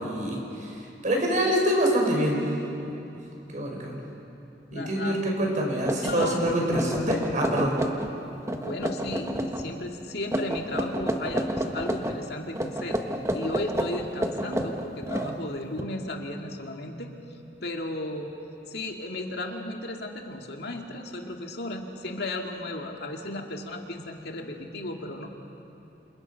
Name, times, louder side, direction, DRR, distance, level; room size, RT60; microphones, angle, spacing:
voice 1, 0.0-2.5 2.8-2.9 3.5-4.0 4.7-7.7, equal, 45° right, 0 dB, 5.8 m, -26 dB
voice 2, 4.7-5.2 6.0-6.4 8.5-13.0 13.3-17.1 17.6-18.3 18.7-25.3, left 1 dB, 65° left, 2 dB, 2.3 m, -35 dB
sound 1, 5.4-5.5 5.9-8.1 8.4-9.7 10.3-12.2 12.6-15.8, equal, 15° right, 1.4 m, -30 dB
29.5 x 27.5 x 5.8 m, 2.9 s
head